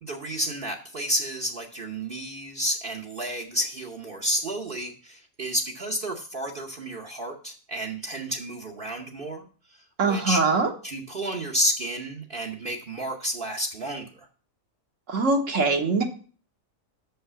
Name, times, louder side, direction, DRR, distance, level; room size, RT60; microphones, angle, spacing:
voice 1, 0.0-9.4 9.7-10.4 10.8-14.3, right 1 dB, 45° right, 1 dB, 1.1 m, -31 dB
voice 2, 10.0-10.7 15.1-16.0, right 3 dB, 65° right, 3 dB, 1.5 m, -22 dB
6.5 x 5.7 x 6.7 m, 0.41 s
omnidirectional pair, 1.4 m